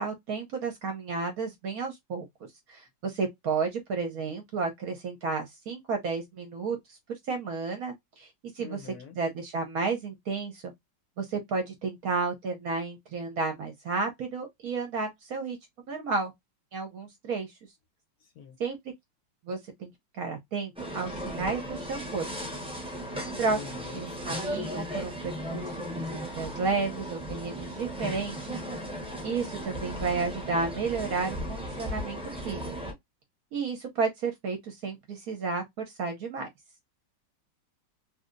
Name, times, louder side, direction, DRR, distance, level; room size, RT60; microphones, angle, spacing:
voice 1, 0.0-2.2 2.7-7.0 7.3-8.3 8.5-10.6 11.2-15.6 15.9-16.3 16.7-17.5 18.6-18.8 19.5-22.3 23.4-23.6 23.9-28.6 29.2-32.2 32.4-32.7 33.5-36.5, right 4 dB, 65° right, 0.9 m, -32 dB
voice 2, 8.6-9.2 18.4-18.6 23.5-24.5, left 7 dB, 65° left, 0.9 m, -45 dB
sound 1, 20.8-32.9, equal, 5° right, 0.5 m, -36 dB
3.1 x 2.6 x 2.4 m
omnidirectional pair, 2.0 m